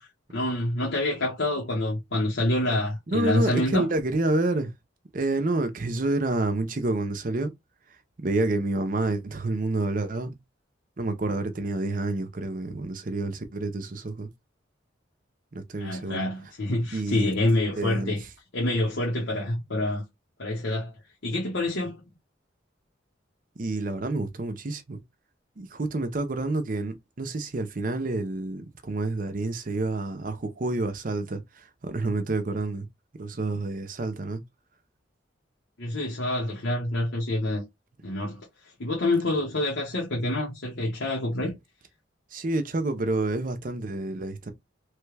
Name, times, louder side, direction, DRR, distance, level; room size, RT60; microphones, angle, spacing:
voice 1, 0.3-3.9 15.8-18.2 18.5-20.0 20.4-20.9 21.2-22.0 35.8-37.6 38.0-38.5 38.8-41.5, left 1 dB, 80° left, 1.1 m, -27 dB
voice 2, 3.1-4.7 5.1-7.5 8.2-10.4 11.0-14.3 15.5-16.3 16.9-17.3 17.8-18.2 23.6-25.0 25.6-32.9 33.2-34.4 42.3-44.5, right 2 dB, 45° right, 0.6 m, -28 dB
3.2 x 2.3 x 3.2 m
head